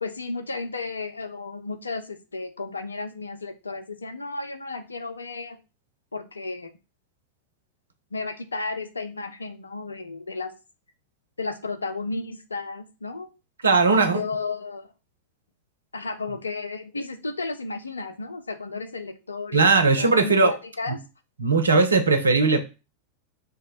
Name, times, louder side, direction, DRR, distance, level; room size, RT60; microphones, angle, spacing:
voice 1, 0.0-5.6 6.1-6.7 8.1-10.5 11.4-13.3 13.9-14.9 15.9-21.0, left 3 dB, 75° left, 0.3 m, -33 dB
voice 2, 13.6-14.2 19.5-20.5 20.9-21.0 21.4-22.6, right 4 dB, 75° right, 0.4 m, -19 dB
2.6 x 2.0 x 3.8 m
figure-of-eight pair, 90°, 0 cm